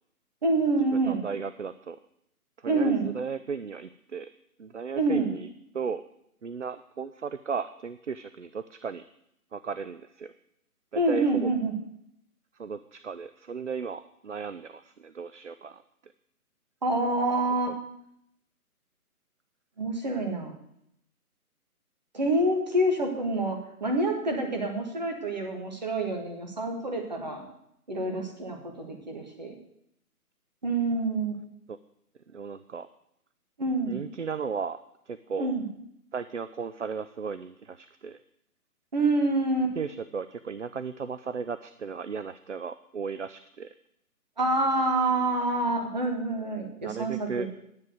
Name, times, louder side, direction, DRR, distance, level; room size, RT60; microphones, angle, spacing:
voice 1, 0.4-1.2 2.6-3.1 4.9-5.3 10.9-11.7 16.8-17.8 19.8-20.5 22.1-27.4 27.9-29.6 30.6-31.4 33.6-34.0 35.4-35.6 38.9-39.7 44.4-47.5, right 2 dB, 30° right, 3 dB, 1.6 m, -27 dB
voice 2, 1.1-2.0 2.6-4.3 4.6-5.5 5.7-6.0 6.4-9.0 9.5-10.3 10.9-11.5 12.6-16.1 31.7-31.8 32.3-32.9 33.9-34.8 35.1-35.5 36.1-38.2 39.8-43.7 46.8-47.5, right 6 dB, 55° right, 13 dB, 0.5 m, -35 dB
10.5 x 7.5 x 7.8 m, 0.76 s
hypercardioid pair, 180°, 45 cm